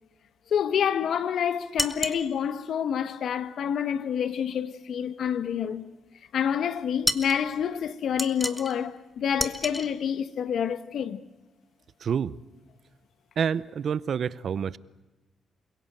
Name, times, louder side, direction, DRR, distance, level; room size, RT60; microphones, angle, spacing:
voice 1, 0.5-5.8 6.3-11.2, left 8 dB, 70° left, 1.2 m, -28 dB
sound 1, 1.8-2.2 7.1-7.4 8.2-8.8 9.4-9.9, left 1 dB, 10° left, 1.5 m, -29 dB
voice 2, 12.0-12.3 13.4-14.8, right 7 dB, 60° right, 0.7 m, -28 dB
29.0 x 17.0 x 8.9 m
cardioid pair, 80°, 0 cm